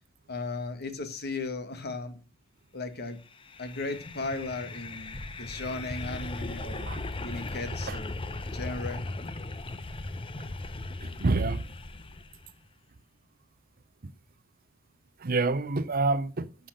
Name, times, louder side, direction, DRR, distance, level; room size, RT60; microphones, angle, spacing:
voice 1, 0.3-2.2 2.7-3.2 3.6-6.9 7.2-8.2 8.5-9.0, left 3 dB, 50° left, 1.7 m, -36 dB
sound 1, 3.3-12.5, left 2 dB, 25° left, 0.7 m, -38 dB
voice 2, 11.0-11.7 15.2-16.5, right 3 dB, 45° right, 0.7 m, -27 dB
12.0 x 5.8 x 6.5 m
head